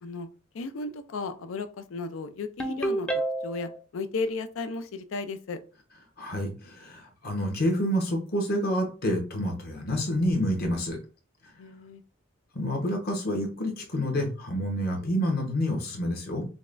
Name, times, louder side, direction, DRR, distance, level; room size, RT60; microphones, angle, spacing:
voice 1, 0.5-3.1 3.4-5.6 11.6-12.0, left 3 dB, 75° left, 10 dB, 0.5 m, -34 dB
Ringtone, 2.6-3.8, right 2 dB, 5° left, 0.4 m, -29 dB
voice 2, 6.2-11.0 12.5-16.4, equal, 50° left, 2 dB, 1.1 m, -28 dB
5.1 x 2.2 x 2.5 m, 0.36 s
head